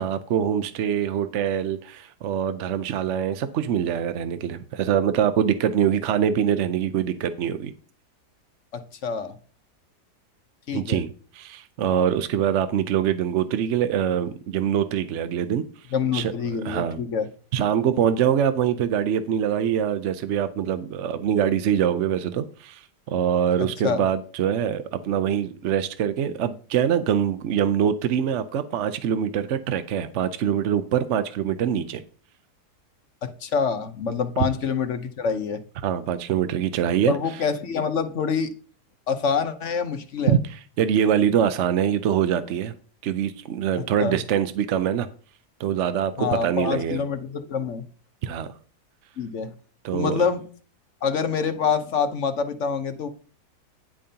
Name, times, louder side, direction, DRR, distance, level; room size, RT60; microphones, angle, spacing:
voice 1, 0.0-7.7 10.7-15.6 16.1-17.0 17.5-32.0 35.8-37.2 40.3-42.7 43.0-45.1 45.6-47.0 48.2-48.5 49.8-50.2, right 9 dB, 65° right, 11 dB, 0.8 m, -24 dB
voice 2, 8.7-9.3 10.7-11.0 15.9-17.3 23.8-24.0 33.2-35.6 37.1-38.5 39.1-40.4 44.0-44.2 46.2-47.8 49.2-49.5 49.9-50.4 51.0-53.1, left 6 dB, 55° left, 8 dB, 1.0 m, -26 dB
10.0 x 8.7 x 2.8 m, 0.41 s
omnidirectional pair, 1.8 m